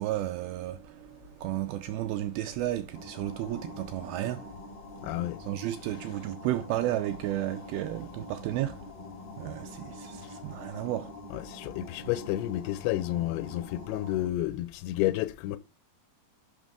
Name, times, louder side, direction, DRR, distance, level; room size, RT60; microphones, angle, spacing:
voice 1, 0.0-4.5 5.4-8.9 9.4-11.1, right 14 dB, 80° right, 2.3 m, -33 dB
sound 1, 2.9-14.3, left 2 dB, 50° left, 1.3 m, -45 dB
voice 2, 5.0-5.4 11.3-15.6, left 15 dB, 80° left, 2.6 m, -31 dB
6.3 x 5.8 x 3.6 m
omnidirectional pair, 4.8 m